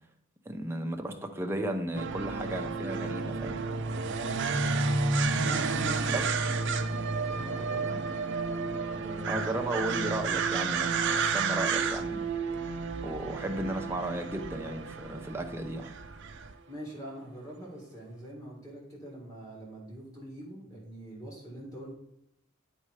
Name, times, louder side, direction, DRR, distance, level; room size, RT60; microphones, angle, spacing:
voice 1, 0.5-3.6 6.1-6.2 9.3-12.3 13.0-16.0, right 1 dB, 10° right, 3 dB, 0.6 m, -34 dB
sound 1, 1.9-16.5, right 4 dB, 55° right, 0.5 m, -31 dB
voice 2, 4.2-5.0 5.4-6.2 6.5-8.0 8.9-9.4 16.7-21.9, equal, 15° left, -4 dB, 2.1 m, -43 dB
8.7 x 4.3 x 4.8 m, 0.76 s
head